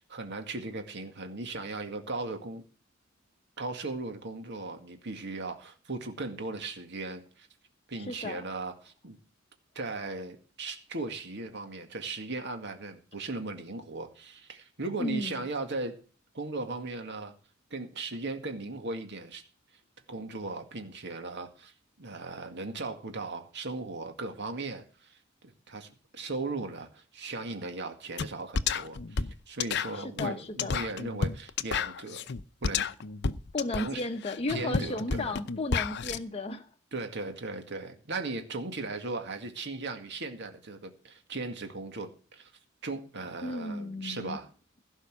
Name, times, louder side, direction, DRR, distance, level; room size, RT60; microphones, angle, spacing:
voice 1, 0.1-2.6 3.6-7.5 7.9-9.2 9.8-16.0 16.3-17.3 17.7-19.4 20.1-21.7 22.0-25.2 25.4-32.2 32.6-32.9 33.8-34.0 34.5-35.4 36.9-42.5 42.8-44.5, right 3 dB, 60° right, 2.1 m, -37 dB
voice 2, 8.0-8.5 15.0-15.4 29.9-30.8 33.5-36.7 43.4-44.4, left 2 dB, 30° left, 0.9 m, -34 dB
sound 1, 28.2-28.3 28.5-36.2, left 5 dB, 55° left, 0.7 m, -31 dB
16.5 x 5.5 x 8.1 m
head